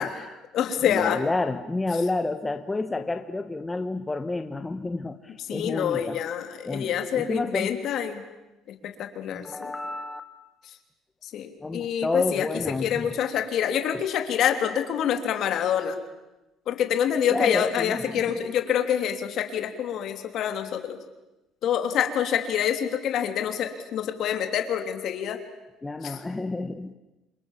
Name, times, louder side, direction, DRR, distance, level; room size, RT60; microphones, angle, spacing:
voice 1, 0.0-0.4 0.8-6.2 6.6-7.8 9.3-10.2 11.6-13.1 17.3-18.4 25.8-26.9, left 2 dB, 15° left, 8 dB, 1.1 m, -30 dB
voice 2, 0.5-1.2 5.5-8.2 8.8-9.7 11.2-16.0 16.7-21.0 21.6-25.4 26.0-26.1, left 9 dB, 60° left, 6 dB, 3.2 m, -26 dB
28.0 x 26.5 x 7.4 m, 1.0 s
cardioid pair, 125°, 0 cm